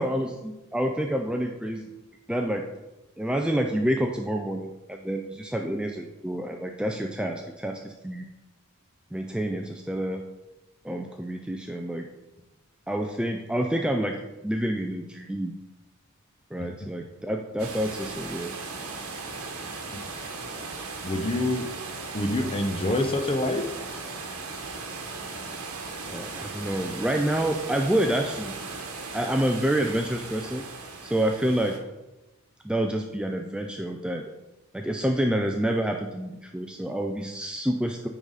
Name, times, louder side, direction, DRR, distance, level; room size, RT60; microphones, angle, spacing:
voice 1, 0.0-1.9 2.3-2.6 3.2-8.2 9.1-10.2 10.8-12.1 12.9-14.2 14.4-15.5 16.5-18.5 26.1-28.6 29.1-30.6 31.0-31.8 32.6-34.2 34.7-38.1, right 1 dB, 5° right, 3 dB, 0.3 m, -28 dB
sound 1, 17.6-31.8, right 4 dB, 80° right, 1.2 m, -37 dB
voice 2, 21.0-21.7 22.1-23.7, left 1 dB, 25° left, 6 dB, 0.7 m, -26 dB
9.4 x 3.9 x 4.8 m, 1.0 s
head